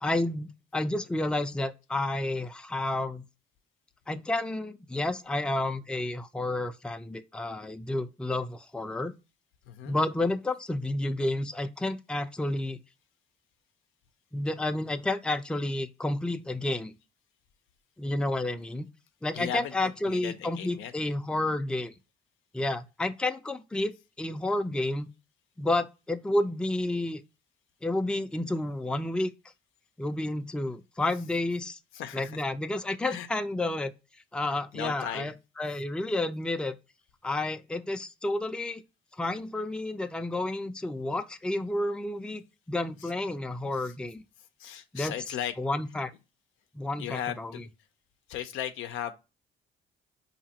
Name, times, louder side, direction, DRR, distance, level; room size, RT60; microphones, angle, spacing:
voice 1, 0.0-3.2 4.1-9.1 9.9-12.8 14.3-16.9 18.0-18.9 19.2-21.9 22.5-23.9 24.2-25.1 25.6-27.2 27.8-29.3 30.0-31.8 32.1-33.9 34.3-36.8 37.2-38.8 39.2-44.2 44.9-45.1 45.6-46.1 46.7-47.5, left 2 dB, 5° left, 0.4 m, -30 dB
voice 2, 9.7-10.0 19.3-20.9 31.9-32.4 33.1-33.3 34.7-35.3 43.0-43.1 43.8-43.9 44.4-45.6 47.0-47.7 48.3-49.1, left 10 dB, 90° left, 0.5 m, -36 dB
4.2 x 2.8 x 2.8 m
cardioid pair, 90°, 20 cm